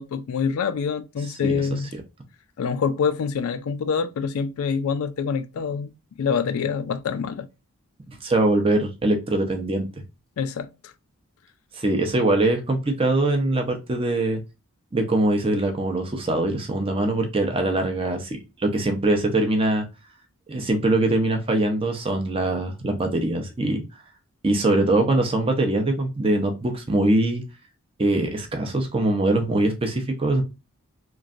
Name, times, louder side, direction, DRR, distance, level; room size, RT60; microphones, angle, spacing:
voice 1, 0.0-1.9 2.6-7.5 10.4-10.9, left 6 dB, 70° left, 0.3 m, -26 dB
voice 2, 1.4-2.0 8.2-9.9 11.7-14.4 14.9-19.8 20.5-23.8 24.4-27.4 28.0-30.4, right 2 dB, 25° right, 0.6 m, -22 dB
3.1 x 2.5 x 2.4 m
head